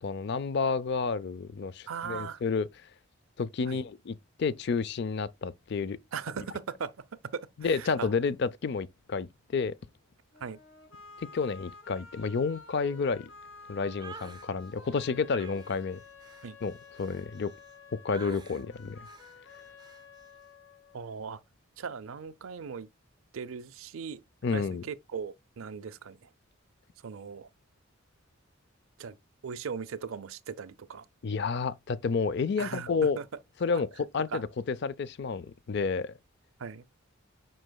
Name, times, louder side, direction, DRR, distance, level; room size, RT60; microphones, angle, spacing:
voice 1, 0.0-2.7 3.4-6.0 7.6-9.7 11.3-13.3 13.7-16.0 16.6-17.5 18.0-19.1 24.4-24.8 31.2-33.2 33.6-36.1, left 5 dB, 50° left, 0.4 m, -30 dB
voice 2, 1.9-2.4 3.7-3.8 6.1-6.9 7.3-8.1 10.4-10.6 16.4-16.6 20.9-21.4 21.8-22.9 23.3-24.2 24.5-26.2 27.0-27.5 29.0-29.2 29.4-31.0 32.6-32.9 33.2-33.3 34.3-34.4 36.6-36.8, right 6 dB, 75° right, 0.5 m, -38 dB
sound 1, 10.3-21.3, left 4 dB, 80° left, 2.2 m, -51 dB
sound 2, 14.0-14.5 15.3-17.7 18.1-18.6 19.1-19.4 19.8-20.0, right 4 dB, 20° right, 0.4 m, -48 dB
7.7 x 5.5 x 2.2 m
head